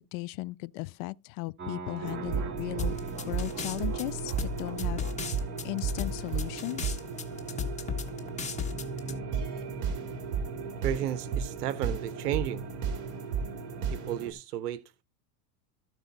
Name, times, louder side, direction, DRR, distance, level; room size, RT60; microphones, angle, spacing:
voice 1, 0.1-2.9 3.3-5.0 5.6-6.9, left 21 dB, 50° left, 0.4 m, -36 dB
Piano, 1.6-8.3, right 4 dB, 25° right, 1.8 m, -48 dB
sound 1, 2.0-14.3, right 5 dB, 40° right, 2.4 m, -34 dB
sound 2, 2.8-9.1, left 7 dB, 15° left, 1.1 m, -35 dB
voice 2, 10.8-12.7 13.9-15.0, right 12 dB, 90° right, 0.7 m, -33 dB
13.5 x 4.7 x 3.9 m
supercardioid pair, 115°, 46 cm